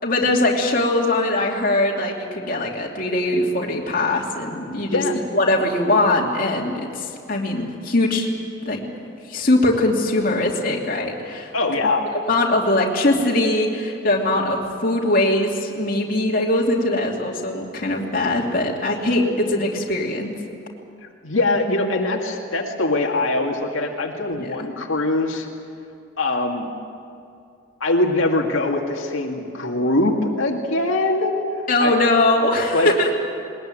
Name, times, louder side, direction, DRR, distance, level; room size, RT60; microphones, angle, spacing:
voice 1, 0.0-5.0 5.3-8.3 8.6-8.8 9.3-11.5 12.2-20.3 24.3-24.7 31.7-33.1, left 2 dB, 45° left, -1 dB, 2.8 m, -21 dB
voice 2, 11.5-12.1 21.0-25.5 26.2-26.7 27.8-31.3 31.8-31.9 32.7-32.9, left 2 dB, 85° left, 0 dB, 2.2 m, -22 dB
21.0 x 20.5 x 9.1 m, 2.5 s
head